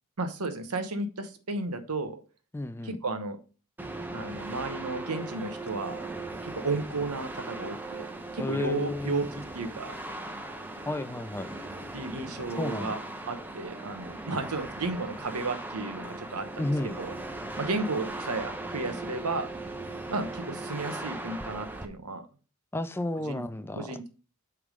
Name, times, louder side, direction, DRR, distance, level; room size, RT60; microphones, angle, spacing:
voice 1, 0.2-2.2 2.8-3.4 4.1-6.0 6.4-8.1 8.3-9.3 9.5-10.0 11.9-13.0 13.3-16.7 17.0-17.1 17.6-19.5 20.1-22.2 23.3-23.4 23.8-24.1, right 3 dB, 75° right, 1.0 m, -33 dB
voice 2, 2.5-3.0 8.4-9.4 10.9-11.5 12.6-13.0 16.6-17.0 22.7-24.0, left 2 dB, 10° left, 0.3 m, -32 dB
sound 1, 3.8-21.9, right 2 dB, 10° right, 0.7 m, -39 dB
8.1 x 3.6 x 5.0 m
head